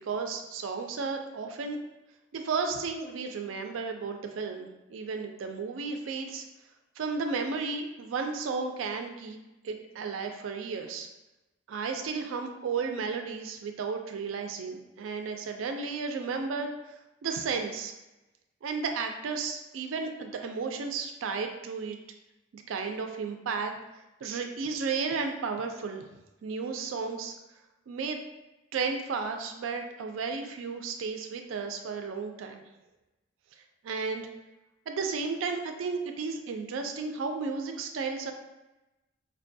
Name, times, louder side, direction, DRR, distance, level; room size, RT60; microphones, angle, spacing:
voice 1, 0.0-1.8 2.3-6.4 7.0-9.4 9.6-11.1 11.7-16.7 17.2-17.9 18.6-22.0 22.5-23.7 24.2-26.0 26.4-27.3 27.9-28.2 28.7-32.6 33.8-34.3 34.9-38.3, right 4 dB, 90° right, 5 dB, 0.4 m, -33 dB
4.5 x 2.2 x 2.6 m, 1.0 s
head